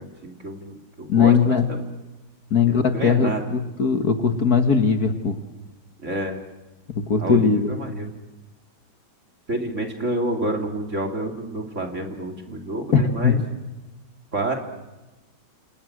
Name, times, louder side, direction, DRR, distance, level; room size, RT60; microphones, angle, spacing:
voice 1, 0.0-1.9 2.7-3.4 6.0-6.4 7.2-8.1 9.5-13.4 14.3-14.5, right 1 dB, 35° right, 3 dB, 3.4 m, -29 dB
voice 2, 1.1-1.7 2.5-5.4 6.9-7.7 12.9-13.3, left 6 dB, 50° left, 6 dB, 1.8 m, -19 dB
28.5 x 27.5 x 6.3 m, 1.1 s
omnidirectional pair, 2.3 m